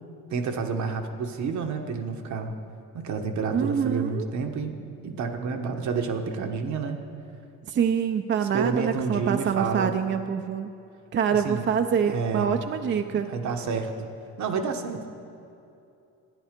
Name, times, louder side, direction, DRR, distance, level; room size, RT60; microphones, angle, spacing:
voice 1, 0.3-2.5 2.9-4.7 5.0-7.0 8.4-9.9 11.3-11.7 12.0-12.6 13.1-14.1 14.4-15.1, right 5 dB, 70° right, 4 dB, 1.1 m, -29 dB
voice 2, 3.5-4.2 7.7-10.7 11.1-13.3, right 7 dB, 40° right, 7 dB, 0.5 m, -25 dB
12.5 x 9.6 x 5.1 m, 2.6 s
cardioid pair, 90°, 30 cm